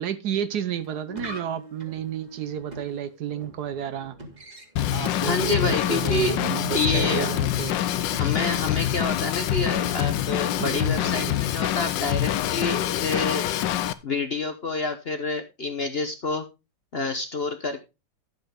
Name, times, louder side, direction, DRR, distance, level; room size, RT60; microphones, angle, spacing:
voice 1, 0.0-4.2 4.9-7.8 10.6-11.4, right 9 dB, 65° right, 1.2 m, -31 dB
sound 1, 0.7-10.8, right 1 dB, 25° right, 2.0 m, -44 dB
Drum kit / Drum, 4.8-13.9, left 12 dB, 80° left, 1.4 m, -25 dB
voice 2, 5.2-6.4 6.7-7.3 8.1-13.6 14.0-16.4 16.9-17.8, left 3 dB, 40° left, 0.9 m, -28 dB
11.5 x 7.9 x 3.5 m
omnidirectional pair, 2.0 m